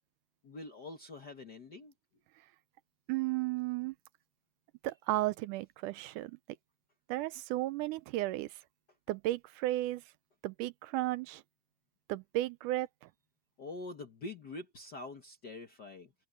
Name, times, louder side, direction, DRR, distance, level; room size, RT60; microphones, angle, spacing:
voice 1, 0.4-1.9 13.6-16.1, left 2 dB, 50° left, 1.2 m, -45 dB
voice 2, 3.1-4.0 4.8-6.4 7.1-8.6 9.1-10.0 10.4-11.4 12.1-12.9, right 16 dB, 80° right, 2.0 m, -34 dB
open air
omnidirectional pair, 3.8 m